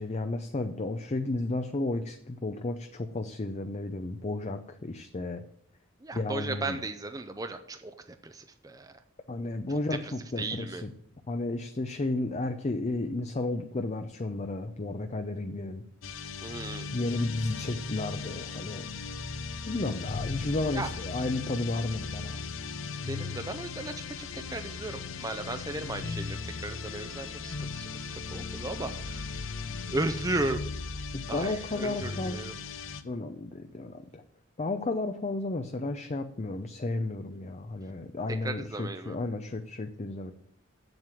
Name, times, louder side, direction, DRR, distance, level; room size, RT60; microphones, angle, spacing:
voice 1, 0.0-5.4 6.1-6.8 9.3-10.9 11.3-15.8 16.9-18.8 19.6-22.4 31.1-32.4 33.0-34.2 34.6-40.3, left 2 dB, 35° left, 7 dB, 0.6 m, -33 dB
voice 2, 6.0-7.9 8.2-8.9 10.4-10.8 16.4-16.9 20.7-20.9 23.0-27.9 28.3-29.4 29.9-30.6 31.3-32.5 38.4-39.2, right 2 dB, 20° right, 8 dB, 0.6 m, -35 dB
sound 1, 16.0-33.0, left 4 dB, 70° left, 0.8 m, -37 dB
7.9 x 7.4 x 7.5 m, 0.71 s
head